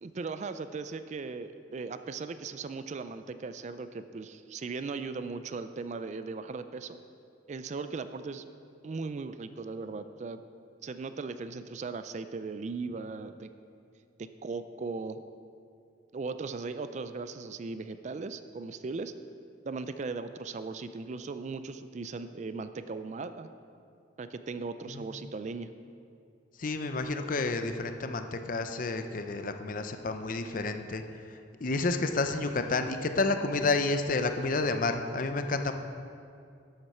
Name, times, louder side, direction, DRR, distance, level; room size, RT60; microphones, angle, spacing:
voice 1, 0.0-7.0 7.5-8.4 8.8-10.4 10.8-13.5 14.2-15.2 16.1-19.1 19.6-23.5 24.2-25.7, right 4 dB, 40° right, 11 dB, 0.4 m, -38 dB
voice 2, 26.6-31.0 31.3-35.7, left 3 dB, 50° left, 8 dB, 0.6 m, -30 dB
11.5 x 8.1 x 4.3 m, 2.4 s
head